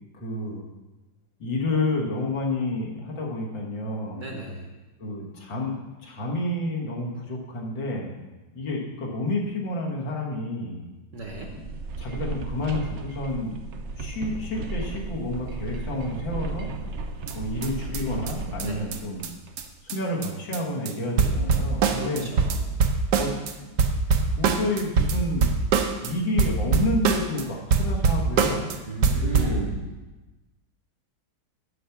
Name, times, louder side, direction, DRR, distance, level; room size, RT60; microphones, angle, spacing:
voice 1, 0.2-0.7 1.4-4.2 5.0-8.1 8.5-10.8 11.5-11.6 12.0-13.6 14.0-16.7 17.3-19.3 19.8-22.3 23.2-23.3 23.6-23.8 24.3-25.5 26.0-28.8 29.1-29.7, left 2 dB, 75° left, -2 dB, 2.3 m, -29 dB
voice 2, 4.2-4.7 11.1-11.5 18.7-18.8 21.9-22.6 28.9-29.8, right 2 dB, 50° right, 1 dB, 1.2 m, -35 dB
sound 1, 11.2-19.7, right 3 dB, 80° right, 0.6 m, -35 dB
sound 2, 17.3-17.4 17.6-17.7 17.9-18.0 18.3-18.4 18.6-18.7 18.9-19.0 19.2-19.3 19.6-19.7 19.9-20.0 20.2-20.6 20.9-21.0 21.2-23.5 23.8-26.1 26.4-27.4 27.7-28.8 29.0-29.6, right 5 dB, 65° right, 1.2 m, -23 dB
8.4 x 5.8 x 7.1 m, 1.1 s
omnidirectional pair, 2.1 m